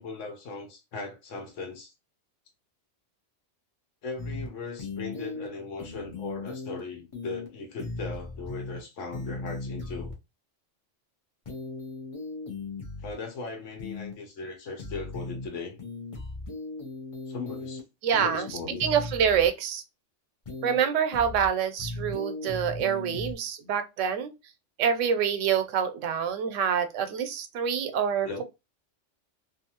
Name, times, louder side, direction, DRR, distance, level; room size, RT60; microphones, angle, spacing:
voice 1, 0.0-1.9 4.0-10.1 13.0-15.8 17.3-17.8 18.1-18.9 28.2-28.4, left 4 dB, 85° left, 1.1 m, -38 dB
sound 1, 4.2-4.5 4.8-5.5 5.8-6.8 7.1-7.5 7.8-8.8 9.1-10.1 11.5-13.1 13.8-14.1 14.8-15.5 15.8-17.8 18.1-19.5 20.4-20.8 21.1-21.5 21.8-23.3, left 3 dB, 35° left, 0.6 m, -37 dB
voice 2, 18.0-18.5 18.8-19.8 20.6-24.3 24.8-28.4, right 8 dB, 90° right, 0.9 m, -26 dB
2.6 x 2.3 x 2.8 m
omnidirectional pair, 1.2 m